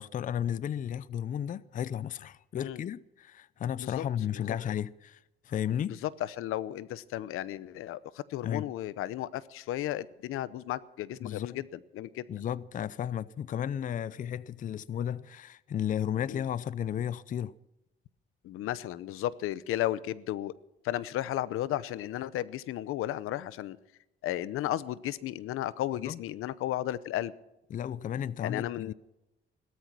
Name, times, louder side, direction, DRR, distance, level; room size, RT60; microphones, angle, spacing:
voice 1, 0.0-5.2 5.4-6.0 8.4-8.7 11.2-11.6 12.3-17.5 26.0-26.2 27.7-28.9, left 9 dB, 40° left, 0.5 m, -34 dB
voice 2, 6.0-12.3 16.3-16.4 18.4-20.5 20.8-23.8 24.2-27.3 28.4-28.9, left 13 dB, 85° left, 0.8 m, -34 dB
17.5 x 13.5 x 6.1 m
cardioid pair, 140°, 21 cm